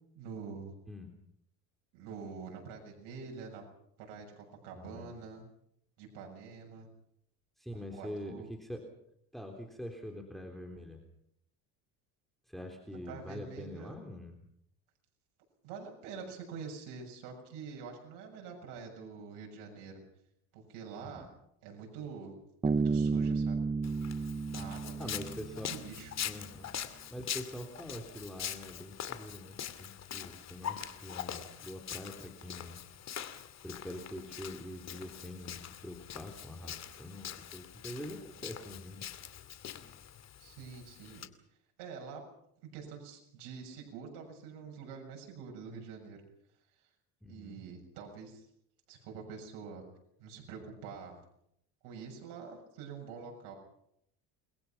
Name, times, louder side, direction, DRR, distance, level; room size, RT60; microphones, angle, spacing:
voice 1, 0.2-0.7 1.9-3.6 4.0-5.4 6.0-6.9 7.7-8.5 13.1-13.9 15.6-20.0 20.5-21.3 21.6-22.3 22.6-23.6 24.5-25.3 25.7-26.1 40.4-41.3 41.8-42.2 42.7-46.2 47.3-48.5 48.9-49.8 50.2-51.2 51.8-53.5, right 5 dB, 75° right, 1 dB, 7.0 m, -46 dB
voice 2, 4.7-5.1 7.6-8.9 9.3-11.0 12.5-14.4 21.0-21.3 24.6-24.7 25.0-25.7 26.2-26.7 27.1-32.8 33.6-39.1 47.2-47.6, left 1 dB, ahead, 3 dB, 3.5 m, -44 dB
Bass guitar, 22.6-26.1, right 4 dB, 15° right, 1.0 m, -32 dB
Walk footsteps, 23.8-41.3, left 9 dB, 45° left, 2.5 m, -43 dB
29.5 x 22.0 x 6.0 m, 0.74 s
supercardioid pair, 110°, 39 cm